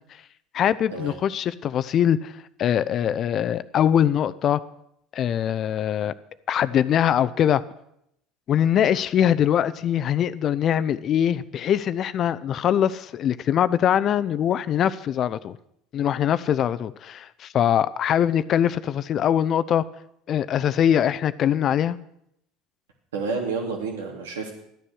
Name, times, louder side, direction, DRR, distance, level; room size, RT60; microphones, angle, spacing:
voice 1, 0.5-2.3 2.6-4.6 5.1-6.1 6.5-7.6 8.5-15.6 15.9-19.8 20.3-22.0, left 9 dB, 50° left, 0.6 m, -22 dB
voice 2, 23.1-24.5, right 4 dB, 85° right, 2.7 m, -29 dB
13.5 x 10.0 x 6.4 m
hypercardioid pair, 75°, 0 cm